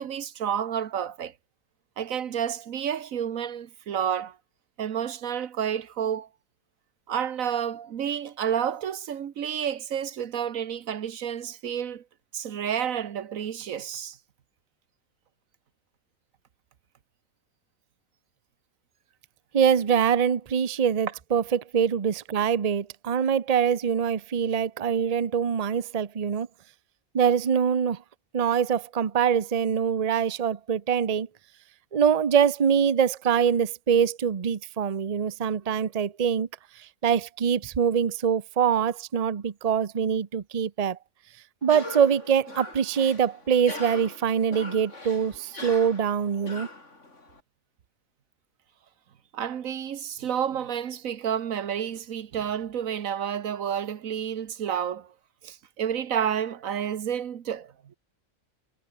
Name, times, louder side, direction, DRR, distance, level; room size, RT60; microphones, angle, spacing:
voice 1, 0.0-1.3 2.0-4.4 4.8-6.3 7.1-12.0 12.3-14.2 49.3-55.1 55.4-58.0, right 8 dB, 75° right, 1.4 m, -30 dB
voice 2, 19.5-26.5 27.1-28.0 28.3-31.3 31.9-36.5 36.8-41.0 41.6-46.7, right 7 dB, 35° right, 0.8 m, -24 dB
Cough, 41.6-47.4, left 2 dB, 60° left, 4.8 m, -41 dB
omnidirectional pair, 1.4 m